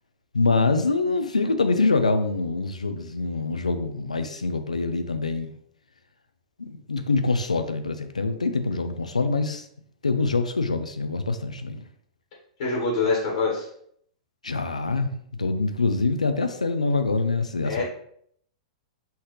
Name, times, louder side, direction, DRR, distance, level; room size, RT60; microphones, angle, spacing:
voice 1, 0.3-5.5 6.6-9.6 10.0-11.8 14.4-15.1 15.4-17.8, left 3 dB, 85° left, 8 dB, 0.5 m, -25 dB
voice 2, 12.6-13.7 17.6-17.8, left 3 dB, 55° left, -3 dB, 1.5 m, -24 dB
5.7 x 2.8 x 3.2 m, 0.66 s
figure-of-eight pair, 105°, 4 cm